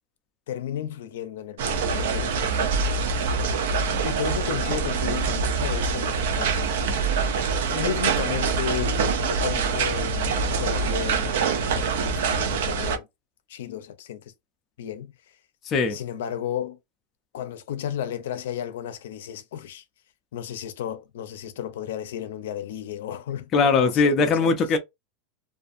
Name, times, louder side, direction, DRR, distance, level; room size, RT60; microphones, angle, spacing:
voice 1, 0.5-2.9 4.0-6.6 7.7-9.0 9.3-13.1 13.5-14.3 14.8-15.1 15.9-16.8 17.3-19.8 20.3-24.5, left 10 dB, 80° left, 0.5 m, -33 dB
sound 1, 1.6-13.0, right 5 dB, 75° right, 0.5 m, -25 dB
voice 2, 23.5-24.8, left 4 dB, 25° left, 0.4 m, -20 dB
2.5 x 2.4 x 2.4 m
supercardioid pair, 170°, 0 cm